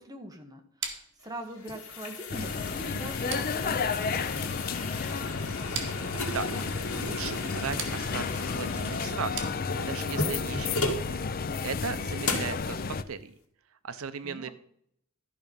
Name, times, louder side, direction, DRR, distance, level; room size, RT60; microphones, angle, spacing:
voice 1, 0.0-4.6 14.2-14.5, right 1 dB, 20° right, 4 dB, 1.4 m, -43 dB
sound 1, 0.8-10.1, right 6 dB, 60° right, 1.9 m, -43 dB
sound 2, 1.2-11.1 11.6-11.7 12.2-12.6, left 3 dB, 80° left, 2.0 m, -36 dB
sound 3, 2.3-13.0, left 5 dB, 45° left, 0.5 m, -32 dB
voice 2, 6.9-9.5 9.9-11.2 11.6-13.3 13.8-14.5, right 6 dB, 80° right, 13 dB, 0.6 m, -37 dB
12.5 x 5.9 x 5.4 m, 0.69 s
head